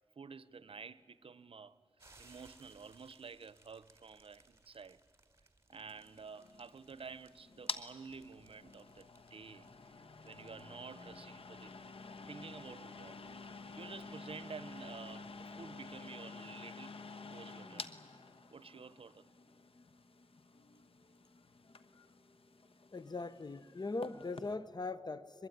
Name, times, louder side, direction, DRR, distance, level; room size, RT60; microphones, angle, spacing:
voice 1, 0.2-1.8 2.2-5.0 5.7-11.7 12.3-13.2 13.8-17.9 18.5-19.3, right 5 dB, 70° right, 0.7 m, -51 dB
sound 1, 2.0-16.2, right 2 dB, 30° right, 3.2 m, -67 dB
sound 2, 5.8-24.6, left 4 dB, 75° left, 1.2 m, -50 dB
voice 2, 22.9-25.5, left 3 dB, 45° left, 0.9 m, -40 dB
23.0 x 22.0 x 9.3 m
cardioid pair, 50°, 10 cm